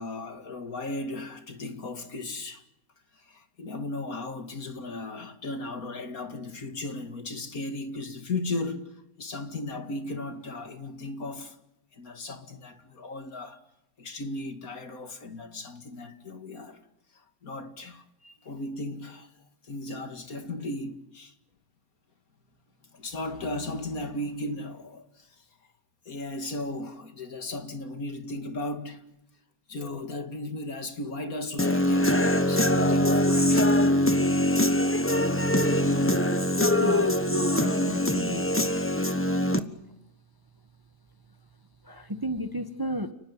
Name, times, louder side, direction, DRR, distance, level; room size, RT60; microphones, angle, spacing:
voice 1, 0.0-2.6 3.1-8.9 9.2-11.6 11.9-13.6 14.0-16.8 17.4-19.3 19.6-21.3 22.9-25.4 26.1-29.1 29.7-33.8, left 2 dB, 60° left, 2.6 m, -36 dB
Human voice / Guitar, 31.6-39.6, left 1 dB, 10° left, 1.1 m, -23 dB
voice 2, 36.5-38.5 41.8-43.1, right 1 dB, 15° right, 1.3 m, -34 dB
30.0 x 20.0 x 9.6 m
omnidirectional pair, 1.7 m